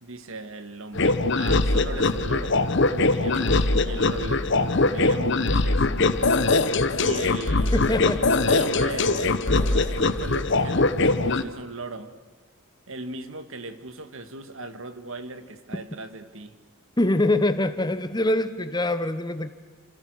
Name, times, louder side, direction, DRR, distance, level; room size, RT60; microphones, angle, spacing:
voice 1, 0.0-2.6 2.9-5.9 7.0-12.1 12.9-16.6, right 2 dB, 65° right, 10 dB, 2.0 m, -38 dB
sound 1, 0.9-11.4, left 2 dB, 55° left, 1.1 m, -22 dB
sound 2, 3.3-3.9 4.3-5.5 6.1-6.2 6.4-8.7 9.5-9.8, left 1 dB, 35° left, 6.7 m, -46 dB
voice 2, 7.7-8.3 17.0-19.5, left 1 dB, 20° left, 11 dB, 1.0 m, -24 dB
29.0 x 28.0 x 6.5 m, 1.4 s
head